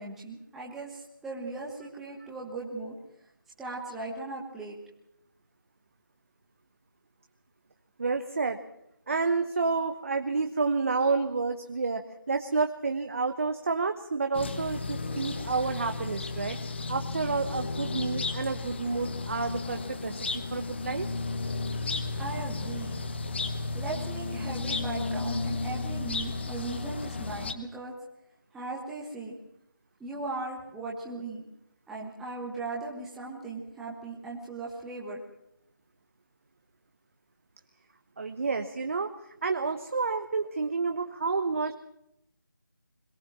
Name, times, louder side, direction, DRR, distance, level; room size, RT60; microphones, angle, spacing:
voice 1, 0.0-2.9 3.6-4.8 22.1-23.0 23.7-27.9 28.5-29.4 30.0-31.4 31.9-35.2, right 3 dB, 5° right, -5 dB, 1.3 m, -38 dB
voice 2, 8.0-8.6 9.1-12.0 12.3-16.6 16.9-21.1 38.2-39.1 39.4-41.7, right 4 dB, 40° right, 7 dB, 1.1 m, -29 dB
sound 1, 14.3-27.5, left 3 dB, 30° left, 1.2 m, -33 dB
22.0 x 16.0 x 7.4 m, 0.79 s
figure-of-eight pair, 170°, 11 cm